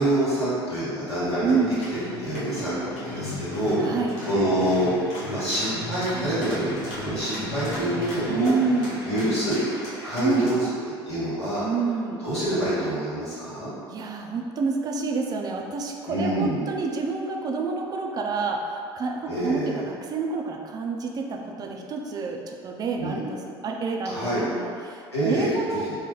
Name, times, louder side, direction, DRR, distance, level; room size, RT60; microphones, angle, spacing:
voice 1, 0.0-1.6 2.2-4.9 5.3-8.5 9.0-9.8 10.0-10.7 11.1-11.6 12.2-13.7 16.1-16.7 19.3-19.8 23.0-23.2 24.1-24.4 25.1-25.5 25.7-25.9, right 1 dB, 85° left, -12 dB, 1.1 m, -26 dB
sound 1, 1.4-10.5, left 1 dB, 55° left, 1.0 m, -35 dB
voice 2, 1.4-1.8 3.8-4.1 8.3-9.0 10.1-10.5 11.6-12.2 13.9-23.4 23.6-25.9, right 4 dB, 30° right, 2 dB, 0.4 m, -28 dB
4.0 x 2.1 x 2.9 m, 2.3 s
figure-of-eight pair, 60°, 13 cm